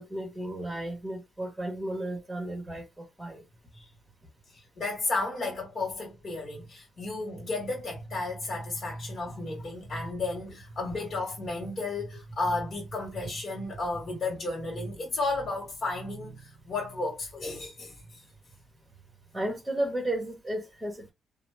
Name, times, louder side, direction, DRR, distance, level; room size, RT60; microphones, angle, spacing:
voice 1, 0.0-3.4 19.3-21.1, right 1 dB, 10° right, 1.1 m, -33 dB
voice 2, 4.5-18.2, left 2 dB, 45° left, 1.4 m, -33 dB
2.8 x 2.0 x 3.3 m
cardioid pair, 90°, 0 cm